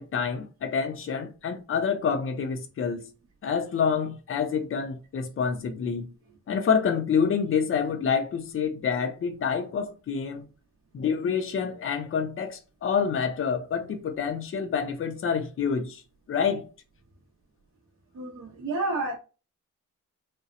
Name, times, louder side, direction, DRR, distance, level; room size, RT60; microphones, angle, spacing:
voice 1, 0.0-3.0 3.4-6.1 6.5-10.5 10.9-16.0 16.3-16.6, left 6 dB, 40° left, 0.6 m, -27 dB
voice 2, 18.1-19.2, right 2 dB, 50° right, 0.9 m, -30 dB
4.1 x 2.2 x 2.4 m
wide cardioid pair, 170°, 32 cm